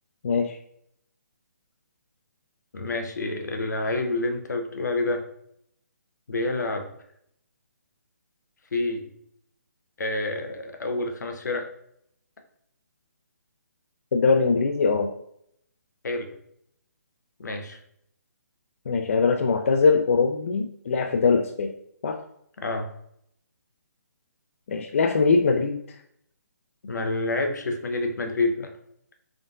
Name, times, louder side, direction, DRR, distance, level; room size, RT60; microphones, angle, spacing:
voice 1, 0.2-0.6 14.1-15.1 18.9-21.7 22.0-22.2 24.7-25.8, left 4 dB, 50° left, 5 dB, 0.3 m, -22 dB
voice 2, 2.7-5.2 6.3-6.9 8.7-9.1 10.0-11.7 16.0-16.3 17.4-17.8 22.6-22.9 26.8-28.7, left 2 dB, 80° left, 5 dB, 0.7 m, -28 dB
3.6 x 3.6 x 2.6 m, 0.70 s
hypercardioid pair, 170°, 9 cm